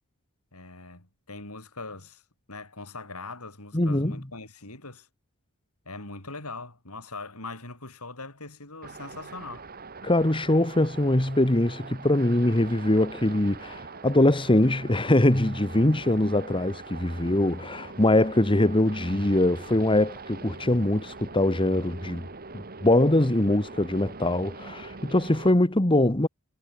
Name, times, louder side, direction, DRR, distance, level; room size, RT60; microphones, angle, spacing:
voice 1, 0.5-2.2 2.5-5.1 5.8-9.7, left 3 dB, 75° left, 7.8 m, -41 dB
voice 2, 3.7-4.1 10.0-22.2 22.5-26.3, left 1 dB, 25° left, 1.6 m, -23 dB
sound 1, 8.8-25.5, right 4 dB, 45° right, 2.7 m, -43 dB
head